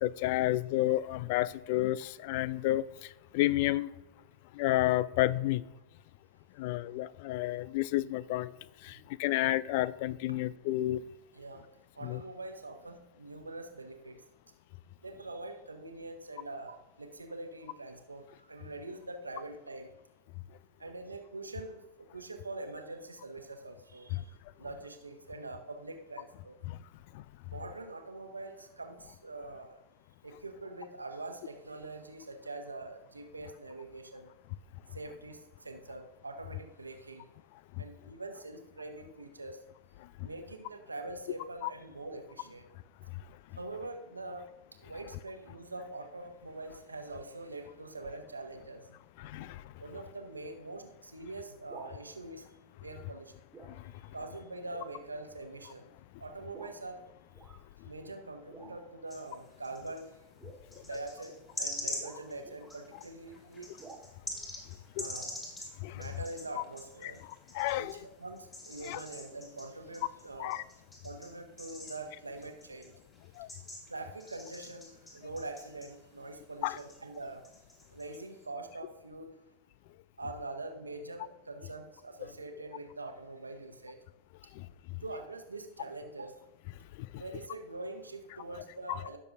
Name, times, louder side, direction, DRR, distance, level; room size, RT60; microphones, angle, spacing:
voice 1, 0.0-2.8 3.3-3.9 4.5-5.6 6.6-8.5 8.8-11.0 12.0-12.2 24.1-24.2 26.7-26.8 27.1-27.2 41.6-41.7 49.2-49.6 65.0-65.1 65.8-66.0 67.0-67.1 67.5-68.0 68.8-69.0 70.4-70.6 73.4-73.5 76.6-76.8 84.6-84.7, left 16 dB, 50° left, 20 dB, 0.3 m, -30 dB
voice 2, 11.3-14.2 15.0-19.9 20.8-26.5 27.5-29.8 30.2-34.3 34.9-37.3 37.8-39.6 40.2-42.7 43.6-44.5 44.8-49.0 49.8-52.5 52.8-53.3 54.1-55.9 56.2-57.0 57.8-60.1 60.8-63.7 65.0-65.4 65.9-67.2 67.7-70.6 71.0-72.9 73.9-77.4 77.9-79.3 80.2-84.0 85.0-86.4 87.2-89.2, right 2 dB, 80° right, 5 dB, 1.1 m, -44 dB
sound 1, 51.6-52.0 52.9-53.2 53.5-53.8 54.2-54.3 54.7-55.0 55.6-55.8 56.5-56.8 57.3-57.6 58.5-59.0 60.3-62.9 63.8-64.0, right 3 dB, 10° right, 1.9 m, -52 dB
sound 2, 59.1-60.1 60.7-68.0 68.4-76.4 76.6-78.5, left 1 dB, 15° left, 3.5 m, -45 dB
16.5 x 6.8 x 2.6 m, 1.0 s
figure-of-eight pair, 90°, 0 cm